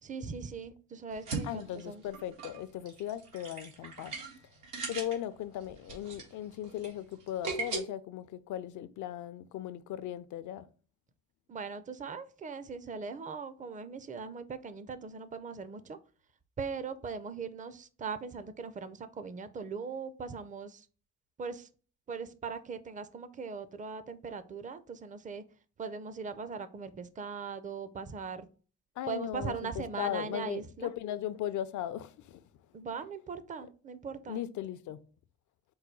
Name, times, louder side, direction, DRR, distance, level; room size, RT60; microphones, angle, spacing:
voice 1, 0.0-2.0 11.5-16.0 16.6-20.9 21.4-21.7 22.1-25.4 25.8-28.5 29.1-30.9 32.7-34.4, right 5 dB, 25° right, 0.5 m, -40 dB
sound 1, 1.1-7.8, right 4 dB, 90° right, 1.5 m, -40 dB
voice 2, 1.4-4.2 4.9-10.7 29.0-32.4 34.3-35.0, left 11 dB, 75° left, 0.5 m, -38 dB
4.7 x 2.2 x 4.5 m
cardioid pair, 90°, 30 cm